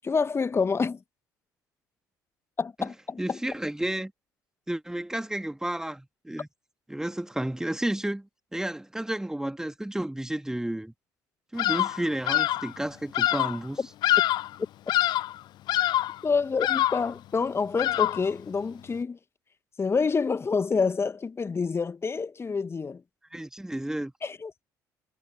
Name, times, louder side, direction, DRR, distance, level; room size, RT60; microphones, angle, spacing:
voice 1, 0.0-1.0 2.6-3.4 13.8-13.9 16.2-19.2 19.8-23.0 24.2-24.5, left 5 dB, 25° left, 1.6 m, -27 dB
voice 2, 3.2-4.1 4.7-6.5 6.9-10.9 11.5-13.8 23.3-24.1, right 1 dB, 5° right, 2.2 m, -32 dB
Bird vocalization bird call bird song, 11.6-12.0 12.3-12.7 13.1-13.6 14.0-14.6 14.9-15.4 15.7-16.2 16.6-17.1 17.8-18.3, left 14 dB, 45° left, 0.5 m, -25 dB
figure-of-eight pair, 55°, 10 cm